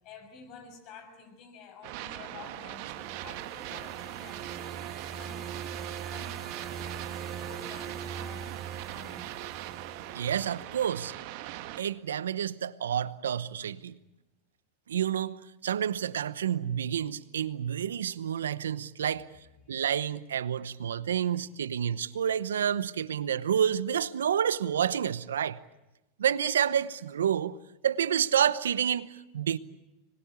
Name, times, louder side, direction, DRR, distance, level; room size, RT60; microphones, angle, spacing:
voice 1, 0.0-4.6 5.0-8.6 8.9-9.3 19.1-19.2 19.6-19.8, left 5 dB, 45° left, 6.6 m, -50 dB
sound 1, 1.8-11.8, right 15 dB, 60° right, 1.5 m, -41 dB
sound 2, 2.6-10.8, right 7 dB, 30° right, 2.5 m, -42 dB
voice 2, 10.1-11.1 11.8-14.0 14.9-19.3 19.7-25.6 26.2-27.6 27.8-29.6, right 9 dB, 90° right, 0.9 m, -29 dB
25.0 x 21.5 x 8.4 m
hypercardioid pair, 110°, 0 cm